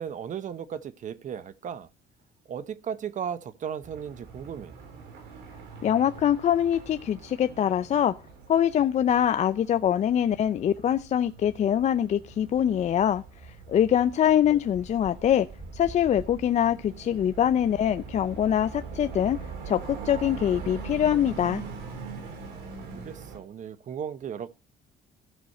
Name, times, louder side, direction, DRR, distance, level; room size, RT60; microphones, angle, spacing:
voice 1, 0.0-1.9 2.5-4.7 22.9-24.5, right 8 dB, 45° right, 0.9 m, -36 dB
sound 1, 3.8-23.4, right 4 dB, 85° right, 2.9 m, -42 dB
voice 2, 5.8-8.2 8.5-15.5 15.7-19.4 19.7-21.6, left 10 dB, 45° left, 0.4 m, -24 dB
sound 2, 12.4-17.7 18.7-20.3 21.9-22.0, right 3 dB, 5° right, 1.3 m, -49 dB
14.5 x 6.2 x 4.2 m
cardioid pair, 110°, 17 cm